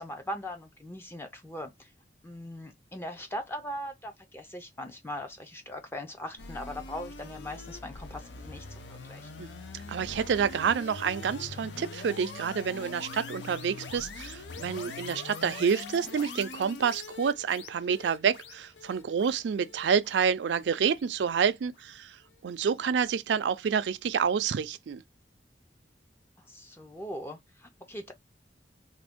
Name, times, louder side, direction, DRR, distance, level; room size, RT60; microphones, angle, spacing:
voice 1, 0.0-1.9 2.2-9.3 26.5-28.1, equal, 15° left, 0.4 m, -40 dB
sound 1, 6.4-21.5, left 3 dB, 90° left, 0.6 m, -43 dB
voice 2, 9.7-25.0, right 7 dB, 85° right, 0.4 m, -28 dB
2.6 x 2.6 x 3.5 m
head